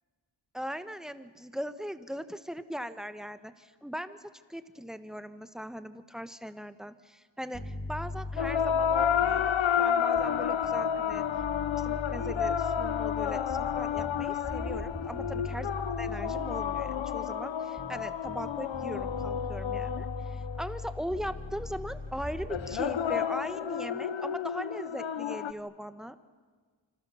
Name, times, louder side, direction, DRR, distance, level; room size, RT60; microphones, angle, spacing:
voice 1, 0.5-9.5 9.8-11.3 11.8-26.2, equal, ahead, 11 dB, 1.2 m, -39 dB
sound 1, 7.5-9.7 10.2-17.3 17.8-22.8, left 2 dB, 30° left, 3.3 m, -40 dB
sound 2, 8.4-20.9 22.5-25.5, left 8 dB, 75° left, 0.9 m, -30 dB
29.0 x 26.0 x 7.1 m, 1.5 s
wide cardioid pair, 90°, 46 cm